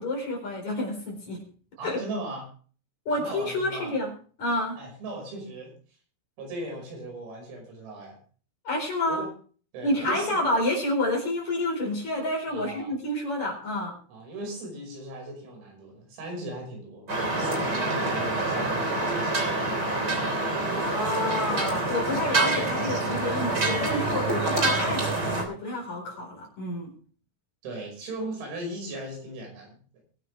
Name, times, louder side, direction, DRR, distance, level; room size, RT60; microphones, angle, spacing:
voice 1, 0.0-1.4 1.8-2.0 3.0-4.1 4.4-4.8 8.6-9.2 9.8-14.0 20.7-26.9, left 1 dB, 35° left, 0 dB, 5.1 m, -29 dB
voice 2, 1.8-2.5 3.1-4.0 4.7-5.7 6.4-8.2 9.1-9.3 9.7-10.4 12.5-12.9 14.1-17.1 17.4-20.3 27.6-29.8, right 1 dB, 85° right, 1 dB, 8.2 m, -38 dB
sound 1, 17.1-25.4, right 2 dB, 25° right, 2.8 m, -26 dB
23.0 x 9.1 x 3.4 m, 0.42 s
omnidirectional pair, 5.9 m